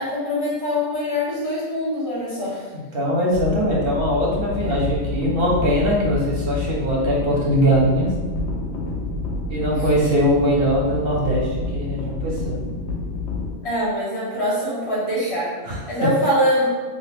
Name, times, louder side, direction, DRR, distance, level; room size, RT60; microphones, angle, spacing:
voice 1, 0.0-2.6 9.7-9.8 13.6-15.5 15.9-16.7, equal, 30° left, -11 dB, 1.6 m, -23 dB
voice 2, 2.7-8.3 9.5-12.6 15.6-15.8, equal, 55° right, -4 dB, 1.0 m, -21 dB
sound 1, 3.3-13.5, left 2 dB, 70° left, 0.9 m, -28 dB
2.9 x 2.8 x 3.4 m, 1.3 s
omnidirectional pair, 1.3 m